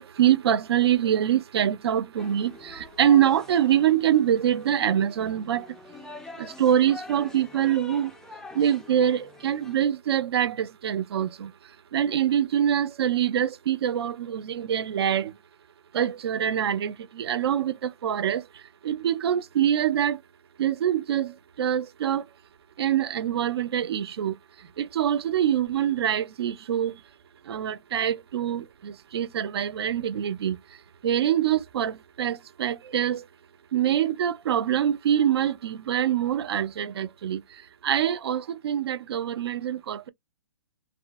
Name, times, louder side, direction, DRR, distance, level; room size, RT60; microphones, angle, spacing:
voice 1, 0.0-5.6 6.4-8.1 8.6-11.5 11.9-15.3 15.9-17.7 18.0-18.4 18.8-20.2 20.6-21.3 21.6-22.2 22.8-24.3 24.8-26.9 27.5-30.6 31.0-33.2 33.7-37.4 37.8-40.1, right 10 dB, 65° right, 0.5 m, -24 dB
sound 1, 2.2-9.8, left 3 dB, 5° left, 0.3 m, -45 dB
2.6 x 2.1 x 2.5 m
hypercardioid pair, 130°, 14 cm